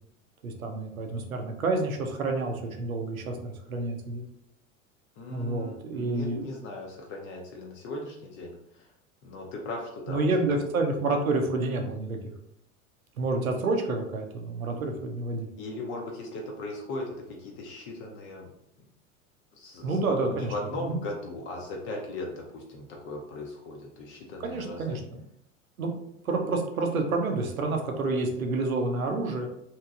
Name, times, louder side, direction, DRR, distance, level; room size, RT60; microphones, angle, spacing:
voice 1, 0.4-4.2 5.3-6.5 10.1-12.3 13.2-15.5 19.8-20.5 20.8-21.0 24.4-25.2 25.8-25.9 26.2-29.5, right 3 dB, 80° right, 3 dB, 0.6 m, -29 dB
voice 2, 5.2-8.9 9.2-10.3 10.5-10.6 15.6-18.5 19.5-25.0, left 2 dB, 30° left, 0 dB, 0.4 m, -38 dB
3.0 x 2.7 x 2.3 m, 0.79 s
figure-of-eight pair, 80°, 41 cm